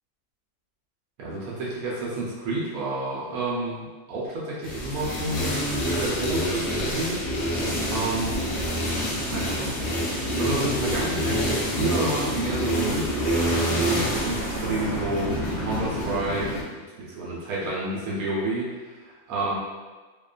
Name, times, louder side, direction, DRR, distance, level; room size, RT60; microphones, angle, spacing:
voice 1, 1.2-7.5 7.9-8.4 9.2-10.1 10.3-19.6, right 2 dB, 90° right, -5 dB, 1.1 m, -30 dB
sound 1, 4.6-16.6, equal, 60° left, 0.8 m, -27 dB
2.7 x 2.2 x 2.4 m, 1.3 s
omnidirectional pair, 1.5 m